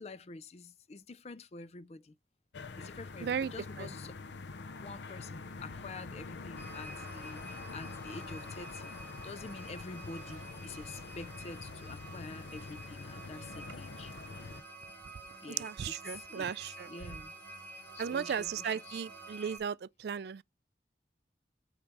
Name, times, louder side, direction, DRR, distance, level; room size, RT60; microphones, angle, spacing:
voice 1, 0.0-2.2 2.8-4.2 4.6-9.0 9.2-14.1 15.4-17.3 17.9-19.0, left 3 dB, 35° left, 0.4 m, -47 dB
sound 1, 2.5-14.6, left 4 dB, 85° left, 0.6 m, -45 dB
voice 2, 3.2-3.5 3.8-3.9 15.6-16.9 18.0-20.4, right 7 dB, 65° right, 0.3 m, -36 dB
sound 2, 6.6-19.6, right 3 dB, 10° left, 2.2 m, -50 dB
8.5 x 3.2 x 5.9 m
head